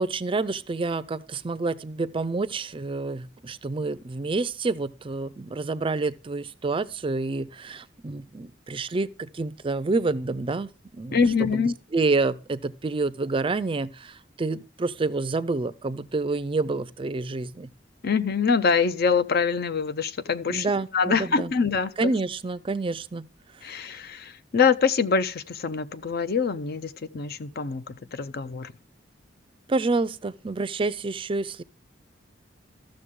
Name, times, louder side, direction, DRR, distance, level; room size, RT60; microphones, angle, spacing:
voice 1, 0.0-11.6 11.9-17.7 20.5-21.5 22.0-23.3 29.7-31.6, right 3 dB, 30° right, 0.4 m, -28 dB
voice 2, 11.1-11.7 18.0-20.7 20.9-22.1 23.6-28.7, left 5 dB, 55° left, 0.6 m, -24 dB
13.5 x 6.5 x 3.6 m
head